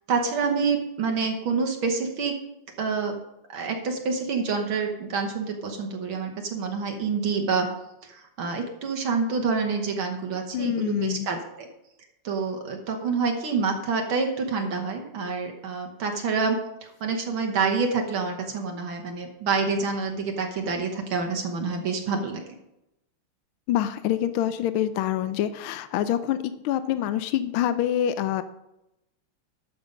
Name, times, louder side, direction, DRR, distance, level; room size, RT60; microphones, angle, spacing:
voice 1, 0.1-2.4 2.8-3.2 3.5-7.7 8.0-11.7 12.2-22.4, right 4 dB, 70° right, 3 dB, 2.0 m, -27 dB
voice 2, 10.5-11.3 23.7-26.4 26.6-28.4, left 11 dB, 80° left, 12 dB, 1.5 m, -26 dB
12.0 x 7.1 x 5.2 m, 0.87 s
omnidirectional pair, 2.3 m